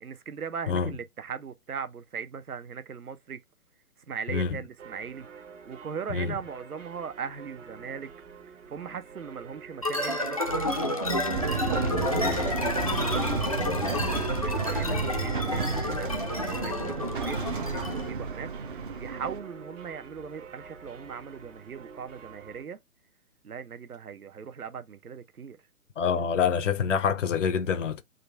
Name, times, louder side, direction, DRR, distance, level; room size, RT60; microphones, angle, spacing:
voice 1, 0.0-3.4 4.1-5.3 5.6-8.1 8.7-12.8 13.1-13.4 14.4-18.5 19.0-22.8 23.4-25.6, right 6 dB, 80° right, 0.8 m, -39 dB
sound 1, 4.8-22.6, right 6 dB, 55° right, 1.1 m, -47 dB
sound 2, 9.8-18.1, left 1 dB, 25° left, 0.4 m, -30 dB
sound 3, 11.3-19.4, right 5 dB, 35° right, 0.6 m, -32 dB
voice 2, 26.0-28.0, left 6 dB, 60° left, 0.6 m, -26 dB
3.8 x 2.3 x 4.4 m
figure-of-eight pair, 135°, 44 cm